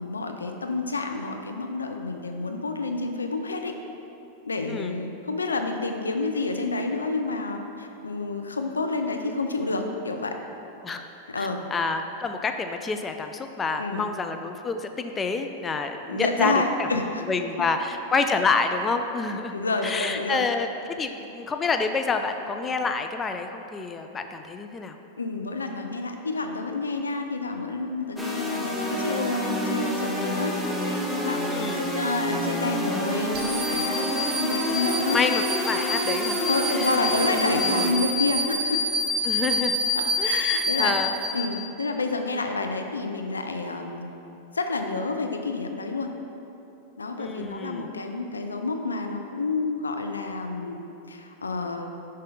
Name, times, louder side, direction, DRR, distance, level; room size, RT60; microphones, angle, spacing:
voice 1, 0.0-3.7 4.4-10.4 11.3-11.7 13.8-14.1 16.1-17.2 19.5-20.4 25.2-30.5 30.8-35.2 36.5-38.8 40.0-40.9 41.3-44.1 44.5-46.1 47.0-51.9, left 3 dB, 85° left, 5 dB, 0.4 m, -29 dB
voice 2, 11.4-16.9 17.3-19.5 19.8-25.0 31.5-31.9 35.1-36.4 36.7-36.9 39.2-39.8 40.2-41.1 47.2-47.9, left 4 dB, 20° left, 6 dB, 0.3 m, -28 dB
sound 1, 28.2-37.9, left 1 dB, ahead, 0.8 m, -28 dB
sound 2, 33.3-41.8, left 1 dB, 40° right, 1.5 m, -28 dB
5.4 x 5.2 x 3.8 m, 2.9 s
hypercardioid pair, 95°, 0 cm